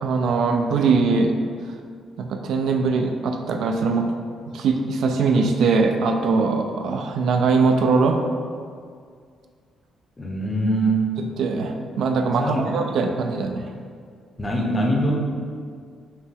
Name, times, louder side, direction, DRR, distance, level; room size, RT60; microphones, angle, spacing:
voice 1, 0.0-1.3 2.2-4.1 4.5-8.2 11.4-13.7, right 4 dB, 70° right, 4 dB, 0.3 m, -21 dB
voice 2, 10.2-11.1 12.3-12.8 14.4-15.4, right 1 dB, 25° left, -1 dB, 0.7 m, -23 dB
5.4 x 2.2 x 3.3 m, 2.1 s
cardioid pair, 90°, 0 cm